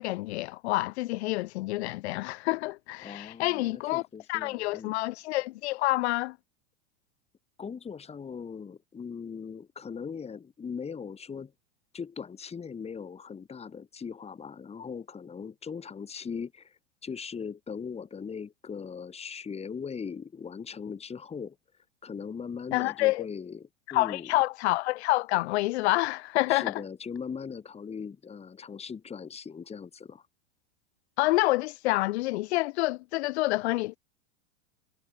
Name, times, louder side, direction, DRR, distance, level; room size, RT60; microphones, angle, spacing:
voice 1, 0.0-4.0 4.3-6.4 22.7-23.3 23.9-26.8 31.2-34.0, left 19 dB, 65° left, 3.0 m, -28 dB
voice 2, 3.0-4.9 7.6-11.5 11.9-21.6 22.0-24.3 26.5-30.2, left 6 dB, 15° left, 2.6 m, -39 dB
hypercardioid pair, 115°, 35 cm